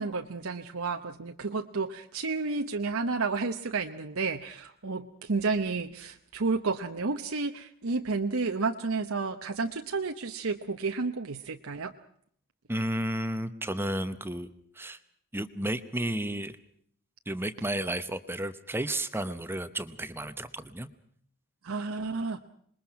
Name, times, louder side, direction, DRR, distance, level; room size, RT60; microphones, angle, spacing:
voice 1, 0.0-11.9 21.6-22.4, right 4 dB, 70° right, 5 dB, 0.9 m, -31 dB
voice 2, 12.7-15.0 15.3-16.5 17.3-20.9, right 1 dB, 10° right, 12 dB, 0.9 m, -32 dB
26.5 x 21.5 x 5.8 m, 0.64 s
head